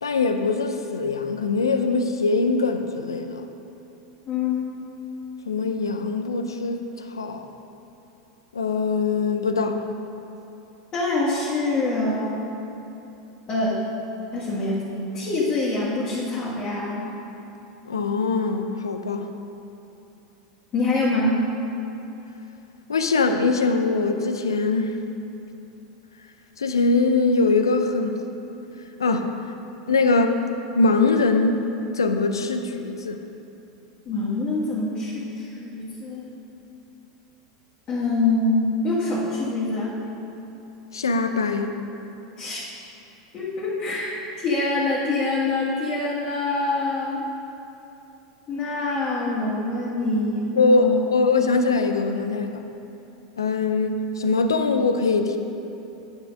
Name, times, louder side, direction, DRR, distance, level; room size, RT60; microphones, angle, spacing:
voice 1, 0.0-3.4 5.5-6.8 7.1-7.5 8.5-9.8 17.9-19.3 22.9-25.0 26.6-28.2 29.0-29.3 29.9-30.4 30.7-31.7 31.9-33.2 40.9-41.7 50.6-52.6 53.4-55.4, left 3 dB, 85° left, 7 dB, 0.6 m, -22 dB
voice 2, 4.3-4.8 10.9-12.4 13.5-13.8 14.3-14.9 15.1-17.1 20.7-21.4 34.1-36.3 37.9-40.0 42.4-42.6 43.3-47.2 48.5-51.1, left 2 dB, 35° left, -8 dB, 2.0 m, -25 dB
8.7 x 5.9 x 5.5 m, 3.0 s
hypercardioid pair, 90°, 2 cm